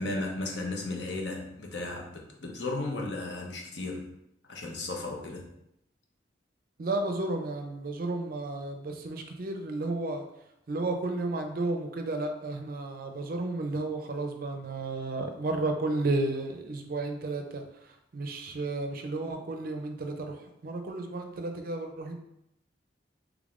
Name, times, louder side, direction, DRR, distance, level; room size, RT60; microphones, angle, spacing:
voice 1, 0.0-4.1 4.5-5.5, left 2 dB, 70° left, 1 dB, 0.7 m, -35 dB
voice 2, 6.8-10.2 10.7-17.6 18.1-22.1, right 2 dB, 50° right, 5 dB, 0.4 m, -32 dB
3.5 x 3.3 x 2.5 m, 0.80 s
head